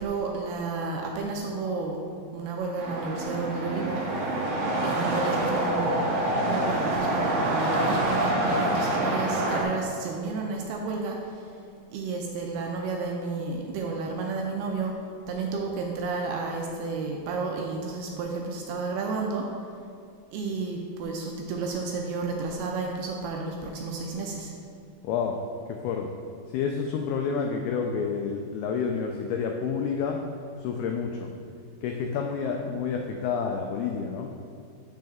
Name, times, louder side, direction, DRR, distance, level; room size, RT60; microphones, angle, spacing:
voice 1, 0.0-2.0 2.3-4.2 4.5-6.0 6.4-11.5 11.9-15.0 15.3-19.5 20.3-24.5, right 4 dB, 85° right, 0 dB, 2.4 m, -32 dB
sound 1, 2.8-9.6, right 1 dB, 65° right, 2.1 m, -26 dB
voice 2, 25.0-25.4 25.7-26.1 26.5-30.2 30.6-31.3 31.8-34.3, left 6 dB, 90° left, 2 dB, 2.2 m, -29 dB
7.7 x 6.4 x 3.5 m, 2.4 s
omnidirectional pair, 5.0 m